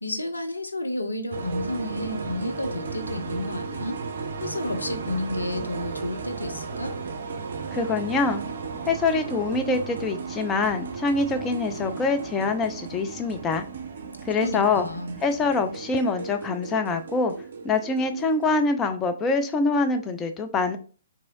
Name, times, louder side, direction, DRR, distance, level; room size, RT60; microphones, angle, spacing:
voice 1, 0.0-4.0 4.4-6.9 14.4-15.2, left 1 dB, 80° left, 6 dB, 0.5 m, -31 dB
sound 1, 1.3-18.6, right 4 dB, 55° right, 0.5 m, -35 dB
voice 2, 7.7-8.4 8.9-13.6 14.3-14.9 15.2-17.3 17.6-20.8, left 3 dB, 15° left, 6 dB, 0.4 m, -24 dB
3.0 x 2.6 x 2.6 m, 0.37 s
figure-of-eight pair, 125°, 0 cm